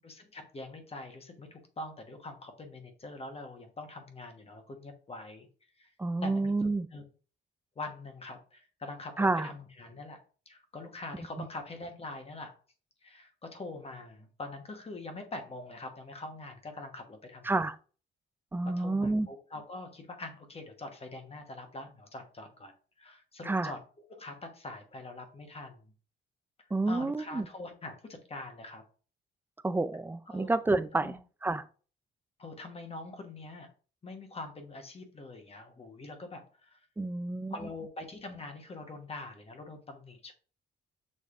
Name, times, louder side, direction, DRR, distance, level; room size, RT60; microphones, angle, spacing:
voice 1, 0.0-5.5 5.8-5.9 6.2-7.0 7.8-10.2 10.5-12.5 13.0-17.5 18.6-23.8 24.1-25.9 26.9-28.8 30.3-30.5 31.0-31.2 32.4-33.7 34.0-36.8 37.5-40.3, left 2 dB, 30° left, 1.1 m, -44 dB
voice 2, 6.0-6.9 9.2-9.5 11.4-11.5 17.4-17.8 18.5-19.3 23.5-23.7 26.7-27.5 29.6-31.2 31.4-31.7 37.0-37.5, right 2 dB, 10° right, 0.4 m, -29 dB
6.4 x 3.2 x 2.5 m
cardioid pair, 90°, 20 cm